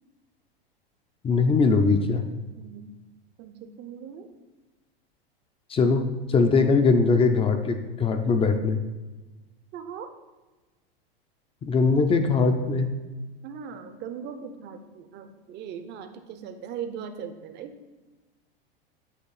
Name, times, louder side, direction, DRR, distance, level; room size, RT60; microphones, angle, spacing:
voice 1, 1.2-2.2 5.7-8.8 11.6-12.9, left 4 dB, 20° left, 7 dB, 0.5 m, -21 dB
voice 2, 2.6-2.9 3.4-4.3 9.7-10.1 13.4-17.7, right 7 dB, 35° right, 8 dB, 0.7 m, -39 dB
8.4 x 3.0 x 4.8 m, 1.2 s
hypercardioid pair, 105°, 30 cm